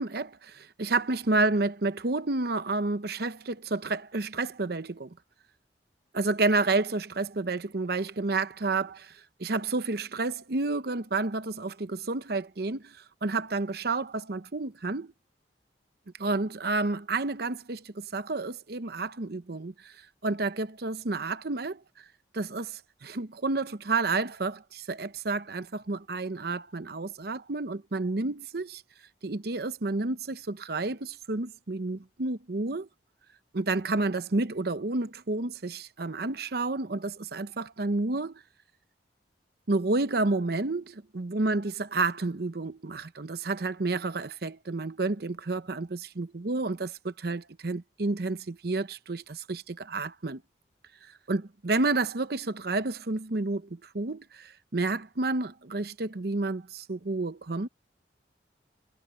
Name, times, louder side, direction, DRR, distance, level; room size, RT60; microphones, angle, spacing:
voice 1, 0.0-5.1 6.1-9.1 9.4-15.1 16.2-19.9 20.2-21.8 22.3-28.8 29.2-32.9 33.5-38.4 39.7-50.4 51.3-57.7, right 3 dB, 60° right, 0.8 m, -30 dB
head